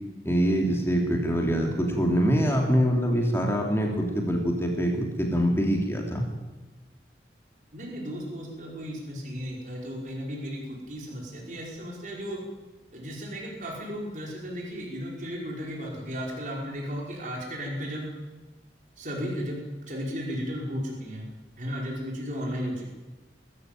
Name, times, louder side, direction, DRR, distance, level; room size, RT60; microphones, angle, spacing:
voice 1, 0.2-6.2, equal, 15° left, 1 dB, 3.0 m, -24 dB
voice 2, 7.7-10.6 10.9-12.4 12.9-18.1 19.0-21.2 21.6-22.9, equal, 45° right, -2 dB, 5.1 m, -34 dB
20.5 x 14.0 x 9.1 m, 1.2 s
head